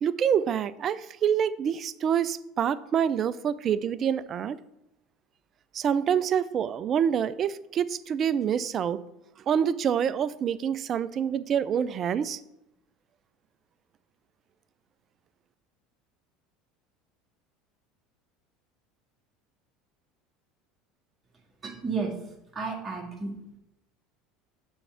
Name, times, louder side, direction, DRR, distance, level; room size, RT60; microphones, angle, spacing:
voice 1, 0.0-4.6 5.7-9.0 9.5-12.4, right 8 dB, 45° right, 17 dB, 0.4 m, -26 dB
voice 2, 21.6-22.1 22.5-23.4, right 4 dB, 30° right, 0 dB, 2.0 m, -32 dB
6.9 x 3.5 x 5.8 m, 0.85 s
hypercardioid pair, 80°, 0 cm